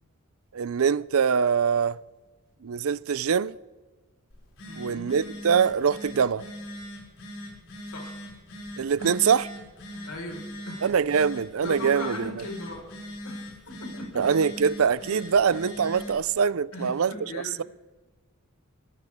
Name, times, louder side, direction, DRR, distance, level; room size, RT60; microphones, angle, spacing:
voice 1, 0.5-2.0 2.6-3.6 4.8-6.4 8.8-9.4 10.8-12.5 14.2-17.6, right 6 dB, 70° right, 0.5 m, -24 dB
Telephone, 4.3-16.2, equal, 65° left, 6.2 m, -41 dB
voice 2, 4.6-5.2 7.8-8.2 9.0-9.2 9.9-10.9 11.6-12.9 13.2-14.3 16.7-17.6, left 2 dB, 85° left, 5.0 m, -39 dB
23.5 x 17.0 x 3.6 m
head